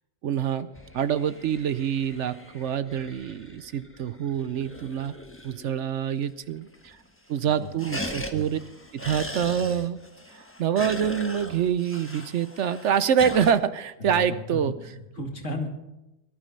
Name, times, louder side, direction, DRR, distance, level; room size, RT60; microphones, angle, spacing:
voice 1, 0.2-0.7 0.9-5.1 5.4-7.0 7.3-8.6 8.9-10.0 10.3-14.8, right 8 dB, 65° right, 14 dB, 1.0 m, -26 dB
sound 1, 0.6-5.9 6.2-6.3 6.6-7.1 7.3-13.5, left 1 dB, 10° left, 1.3 m, -39 dB
voice 2, 14.0-15.7, left 2 dB, 65° left, 2 dB, 2.7 m, -34 dB
19.0 x 12.0 x 5.4 m, 0.95 s
omnidirectional pair, 1.4 m